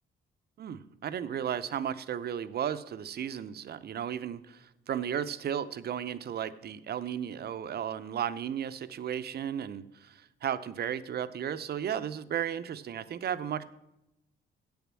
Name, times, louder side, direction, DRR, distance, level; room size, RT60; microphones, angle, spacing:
voice 1, 0.6-13.6, right 9 dB, 55° right, 13 dB, 0.6 m, -34 dB
8.0 x 7.0 x 7.4 m, 0.89 s
cardioid pair, 90°, 20 cm